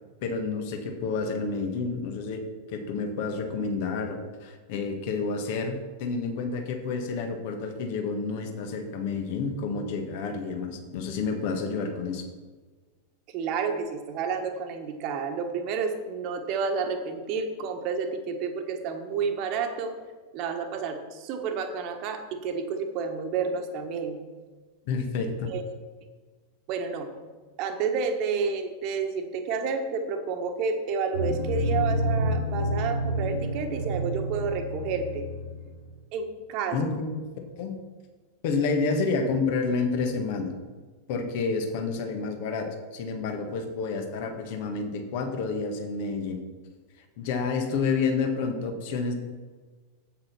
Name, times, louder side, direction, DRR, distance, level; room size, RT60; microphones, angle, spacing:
voice 1, 0.2-2.4 2.7-12.2 24.9-25.5 36.7-37.3 37.6-37.7 38.4-40.5 41.1-46.4 47.2-49.1, left 4 dB, 50° left, 5 dB, 1.7 m, -29 dB
voice 2, 13.3-19.9 20.3-24.2 25.5-25.6 26.7-27.1 27.6-35.3 36.1-36.9, right 5 dB, 40° right, 5 dB, 1.5 m, -30 dB
sound 1, 31.1-35.9, equal, 80° left, 2.9 m, -29 dB
8.6 x 8.4 x 5.9 m, 1.4 s
figure-of-eight pair, 90°, 0 cm